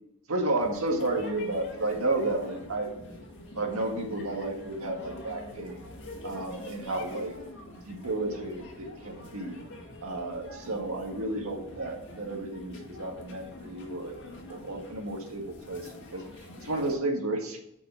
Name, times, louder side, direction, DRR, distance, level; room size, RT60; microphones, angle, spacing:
voice 1, 0.3-2.9 3.6-5.9 6.2-7.3 7.9-9.6 10.0-16.2 16.6-17.6, right 2 dB, 75° right, 2 dB, 1.7 m, -32 dB
sound 1, 0.6-17.0, left 2 dB, 55° left, 1.9 m, -45 dB
6.1 x 5.6 x 7.0 m, 0.80 s
head